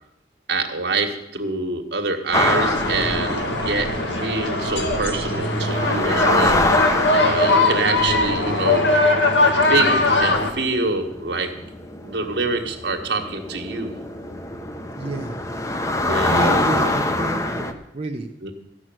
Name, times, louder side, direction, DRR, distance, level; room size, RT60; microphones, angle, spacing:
voice 1, 0.5-3.9 4.2-8.9 9.6-10.0 10.2-11.5 12.0-13.9 16.0-16.9 18.4-18.5, right 3 dB, 75° right, 4 dB, 1.7 m, -26 dB
sound 1, 2.3-10.5, left 2 dB, 85° left, 1.8 m, -20 dB
sound 2, 2.3-17.7, left 2 dB, 20° left, 0.9 m, -26 dB
voice 2, 15.0-15.4 16.3-18.3, right 2 dB, 35° right, 1 dB, 0.8 m, -29 dB
13.5 x 6.3 x 9.1 m, 0.82 s
head